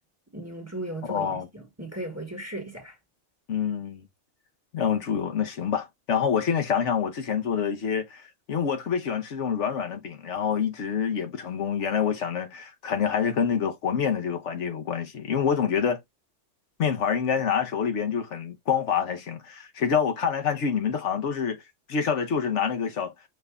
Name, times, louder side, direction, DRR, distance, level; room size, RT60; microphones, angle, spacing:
voice 1, 0.3-3.0, right 1 dB, 15° right, 1.3 m, -36 dB
voice 2, 1.1-1.5 3.5-4.1 4.7-16.0 16.8-21.6 21.9-23.1, left 7 dB, 75° left, 1.2 m, -27 dB
5.8 x 2.6 x 3.4 m
omnidirectional pair, 1.2 m